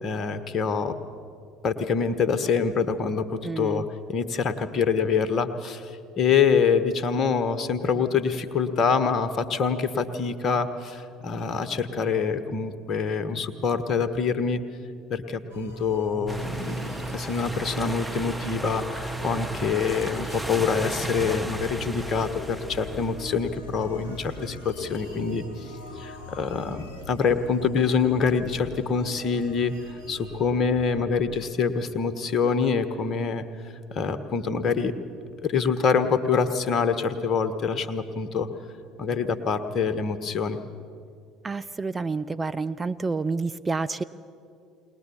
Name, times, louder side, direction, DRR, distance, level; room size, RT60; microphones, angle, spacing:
voice 1, 0.0-1.0 1.6-3.3 3.6-5.9 6.2-14.6 15.1-25.4 26.0-29.7 30.1-33.4 33.9-34.9 35.4-38.5 39.0-40.6, left 5 dB, 45° left, 11 dB, 1.3 m, -25 dB
voice 2, 3.4-3.8 41.4-44.0, right 4 dB, 20° right, 11 dB, 0.6 m, -29 dB
sound 1, 15.5-31.0, equal, 90° right, 2.2 m, -39 dB
sound 2, 16.3-24.4, right 1 dB, 5° right, 1.0 m, -36 dB
21.0 x 19.5 x 7.1 m, 2.5 s
figure-of-eight pair, 60°, 0 cm